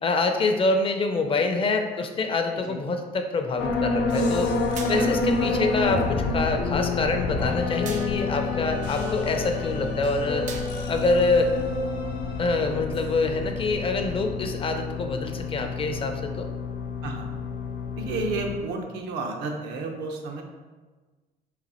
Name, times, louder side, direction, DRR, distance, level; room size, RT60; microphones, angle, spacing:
voice 1, 0.0-4.5 4.9-10.5 10.9-11.5 12.4-16.5, left 3 dB, 30° left, 5 dB, 0.4 m, -26 dB
sound 1, 3.6-18.6, left 3 dB, 80° left, 0.6 m, -28 dB
sound 2, 4.8-5.4 7.9-8.4 10.5-11.1, right 6 dB, 45° right, 0.4 m, -40 dB
voice 2, 18.0-20.4, right 3 dB, 80° right, 2 dB, 0.7 m, -31 dB
4.0 x 2.4 x 4.1 m, 1.3 s
cardioid pair, 110°, 17 cm